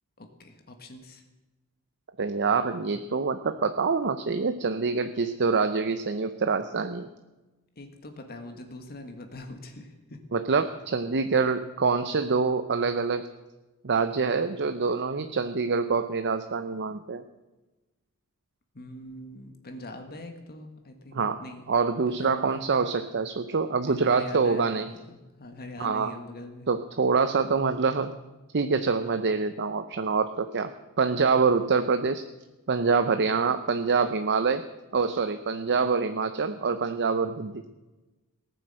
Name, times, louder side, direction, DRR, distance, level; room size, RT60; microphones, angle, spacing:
voice 1, 0.2-1.2 7.7-10.2 18.7-21.6 22.1-22.8 23.9-26.7, left 1 dB, 45° left, 5 dB, 1.7 m, -43 dB
voice 2, 2.2-7.1 10.3-13.3 13.8-17.2 21.1-21.4 21.7-24.9 25.8-26.1 26.7-28.1 28.5-30.7 31.0-32.2 32.7-34.6 34.9-37.6, right 4 dB, 50° right, 9 dB, 0.7 m, -25 dB
18.0 x 9.8 x 7.8 m, 1.1 s
head